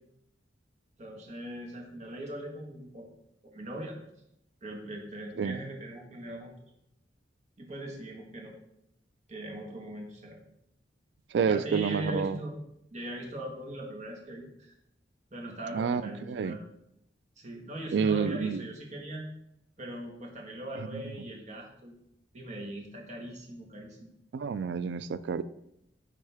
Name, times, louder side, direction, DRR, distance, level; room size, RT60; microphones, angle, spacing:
voice 1, 1.0-3.1 3.4-4.0 4.6-6.5 7.6-8.5 9.3-10.4 11.4-12.6 12.9-14.7 15.3-16.6 17.4-19.3 19.8-21.9 22.3-24.1, right 1 dB, 40° right, 0 dB, 1.4 m, -40 dB
voice 2, 11.3-12.4 15.7-16.6 17.9-18.6 20.9-21.0 24.3-25.4, right 6 dB, 70° right, 15 dB, 0.3 m, -29 dB
10.0 x 3.6 x 3.4 m, 0.79 s
head